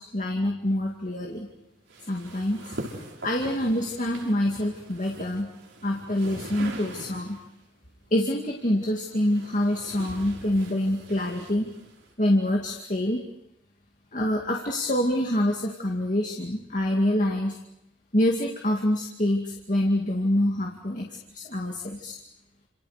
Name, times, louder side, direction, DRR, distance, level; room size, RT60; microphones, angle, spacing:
voice 1, 0.0-1.5 2.1-2.7 3.2-5.5 5.8-7.4 8.1-11.7 12.2-13.2 14.1-17.6 18.1-22.2, left 1 dB, 40° left, 0 dB, 2.4 m, -26 dB
sound 1, 1.9-7.5 8.6-12.1, right 1 dB, 80° right, 5.9 m, -42 dB
30.0 x 28.0 x 5.1 m, 0.83 s
head